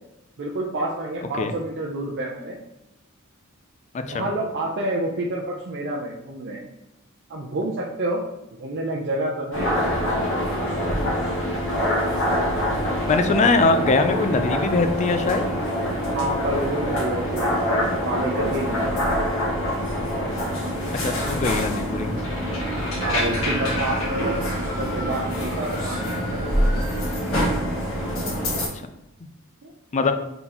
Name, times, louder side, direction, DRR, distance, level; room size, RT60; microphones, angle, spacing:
voice 1, 0.4-2.6 4.1-6.6 7.3-8.2 8.6-9.9 16.1-17.6 17.9-18.9 23.0-24.4 24.7-26.4 29.6-29.7, right 1 dB, 55° right, -3 dB, 0.6 m, -28 dB
sound 1, 9.5-28.7, equal, 75° left, 1.5 m, -25 dB
voice 2, 13.1-15.4 21.0-22.2 29.9-30.1, left 3 dB, 35° left, 8 dB, 0.4 m, -22 dB
Screaming, 23.0-27.8, left 1 dB, 20° right, 1.5 m, -36 dB
3.9 x 3.9 x 2.9 m, 0.89 s
head